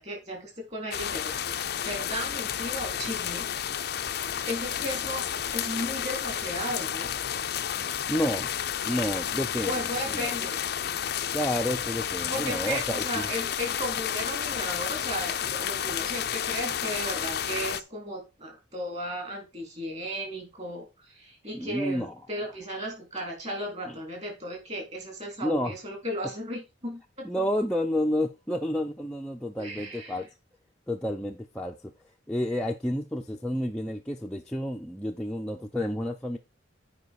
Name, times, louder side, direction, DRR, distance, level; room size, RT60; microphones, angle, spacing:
voice 1, 0.0-3.5 4.0-5.3 5.5-7.1 9.6-10.6 12.3-27.3 29.6-30.2, equal, 35° right, 3.6 m, -35 dB
sound 1, 0.9-17.8, left 9 dB, 50° left, 0.5 m, -31 dB
voice 2, 8.1-8.5 8.8-9.8 10.1-10.3 11.3-13.3 21.5-22.1 23.9-24.0 25.4-25.7 27.2-30.3 30.9-31.7 32.3-36.4, equal, 5° left, 0.6 m, -30 dB
9.6 x 5.1 x 4.7 m
head